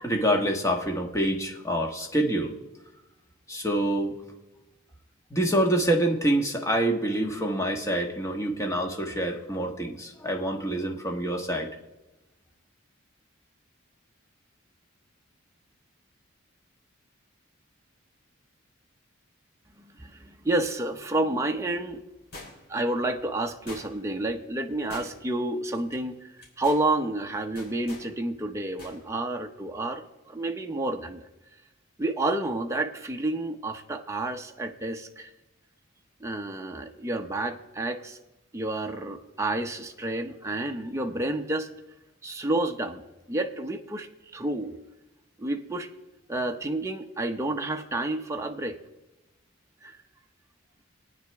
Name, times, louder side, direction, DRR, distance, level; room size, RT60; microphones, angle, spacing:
voice 1, 0.0-2.5 3.5-4.2 5.3-11.7, right 1 dB, 15° left, 1 dB, 1.3 m, -26 dB
voice 2, 20.0-22.0 22.7-26.3 26.6-31.2 32.0-35.3 36.2-38.2 38.5-41.7 42.2-43.0 43.3-44.8 45.4-45.9 46.3-48.8 49.8-50.0, right 2 dB, 15° right, 3 dB, 0.7 m, -30 dB
sound 1, 22.3-22.8 23.7-24.2 24.9-25.4 25.7-25.9 26.4-26.9 27.6-28.1 28.8-29.0 29.3-29.4, left 2 dB, 50° left, 3.7 m, -44 dB
22.5 x 9.2 x 3.5 m, 1.0 s
head